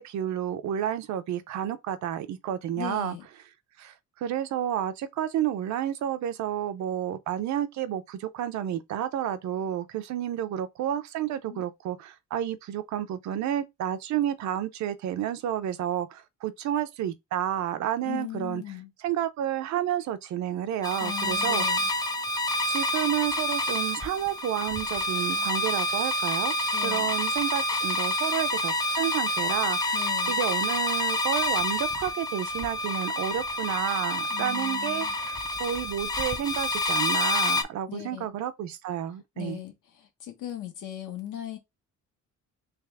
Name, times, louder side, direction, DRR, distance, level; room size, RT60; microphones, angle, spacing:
voice 1, 0.0-3.2 3.8-18.6 19.0-21.6 22.7-26.5 26.8-39.6, right 11 dB, 65° right, 0.6 m, -30 dB
voice 2, 2.8-3.2 11.5-11.6 18.0-18.9 21.0-21.9 25.3-25.5 26.7-27.1 29.9-30.4 34.3-35.1 37.9-38.3 39.4-41.6, left 12 dB, 80° left, 1.3 m, -38 dB
sound 1, 20.8-37.6, left 1 dB, 15° left, 0.3 m, -28 dB
3.5 x 3.2 x 3.4 m
cardioid pair, 180°, 31 cm